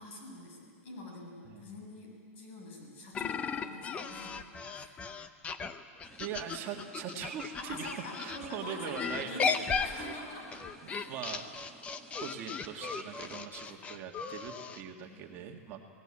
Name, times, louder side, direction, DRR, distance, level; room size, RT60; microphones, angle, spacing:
voice 1, 0.0-4.4 4.7-5.0 7.6-11.1 13.6-13.9 15.0-15.6, left 1 dB, 55° left, 1 dB, 7.7 m, -46 dB
sound 1, 3.1-8.4 8.9-14.8, left 5 dB, 15° left, 0.8 m, -36 dB
sound 2, 6.0-13.4, right 2 dB, ahead, 1.8 m, -51 dB
voice 2, 6.2-9.4 9.7-10.1 11.0-11.4 12.2-15.8, right 8 dB, 30° right, 2 dB, 1.8 m, -41 dB
26.0 x 17.5 x 8.8 m, 2.1 s
supercardioid pair, 155°, 8 cm